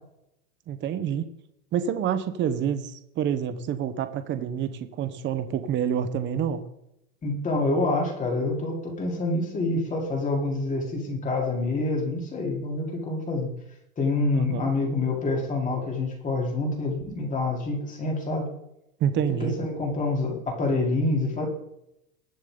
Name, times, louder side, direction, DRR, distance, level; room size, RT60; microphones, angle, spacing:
voice 1, 0.7-1.3 1.7-6.6 14.3-14.7 19.0-19.6, right 8 dB, 25° right, 10 dB, 1.1 m, -27 dB
voice 2, 7.2-13.5 14.0-18.5 19.4-21.4, left 2 dB, 20° left, 0 dB, 3.9 m, -27 dB
21.0 x 7.0 x 3.9 m, 0.81 s
supercardioid pair, 140°, 42 cm